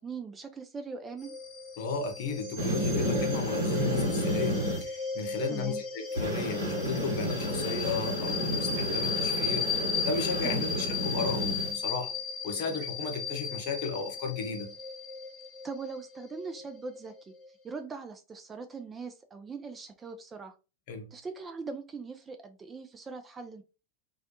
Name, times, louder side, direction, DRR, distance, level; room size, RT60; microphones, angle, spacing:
voice 1, 0.0-1.3 5.5-5.8 10.4-10.7 15.6-17.3 17.6-20.5 21.1-23.6, right 4 dB, 20° right, 0.3 m, -41 dB
sound 1, 1.2-17.5, left 5 dB, 15° left, 0.7 m, -35 dB
voice 2, 1.8-9.7 10.0-12.1 12.4-14.7 20.9-21.1, left 5 dB, 45° left, 0.7 m, -34 dB
sound 2, 2.6-4.8 6.2-11.7, equal, 75° right, 0.8 m, -31 dB
2.3 x 2.1 x 2.7 m
figure-of-eight pair, 90°, 0 cm